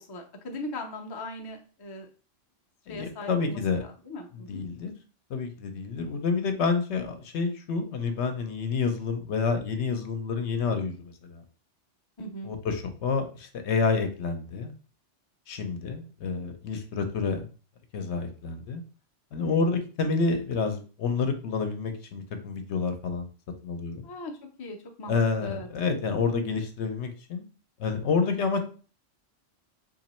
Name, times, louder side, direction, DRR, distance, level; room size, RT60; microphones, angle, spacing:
voice 1, 0.0-2.1 2.9-4.6 12.2-12.5 19.4-19.7 24.0-25.7, left 1 dB, 30° left, 2 dB, 0.4 m, -39 dB
voice 2, 2.9-3.8 4.3-4.9 5.3-11.4 12.5-14.7 15.5-17.4 17.9-18.8 19.3-23.3 23.6-24.1 25.1-27.5 27.8-28.6, left 4 dB, 75° left, 6 dB, 0.9 m, -28 dB
2.9 x 2.7 x 4.1 m, 0.38 s
omnidirectional pair, 1.2 m